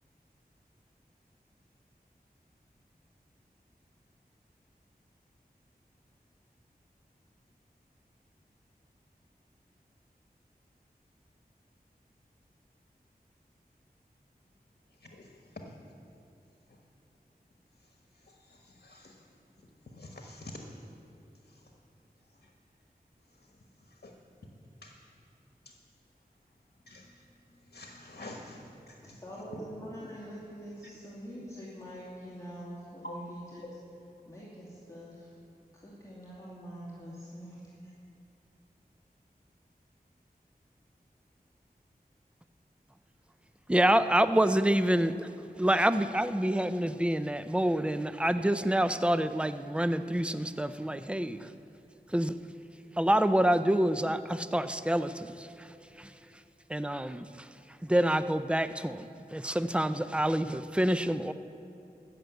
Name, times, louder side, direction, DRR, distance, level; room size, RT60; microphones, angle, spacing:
voice 1, 15.0-15.4 18.3-19.2 19.9-20.6 24.0-24.1 24.8-24.9 25.6-25.7 26.9-27.1 27.7-29.2 33.0-33.1, left 1 dB, 70° left, 1 dB, 1.3 m, -47 dB
voice 2, 29.0-33.8 34.2-35.4 35.7-37.9, equal, 20° left, -7 dB, 2.5 m, -45 dB
voice 3, 43.7-45.3 45.6-51.4 52.1-52.3 53.0-55.5 56.0-56.1 56.7-57.3 57.9-59.1 59.3-61.3, right 1 dB, 5° right, 12 dB, 0.5 m, -27 dB
14.0 x 6.7 x 7.9 m, 2.8 s
wide cardioid pair, 40°, 16 cm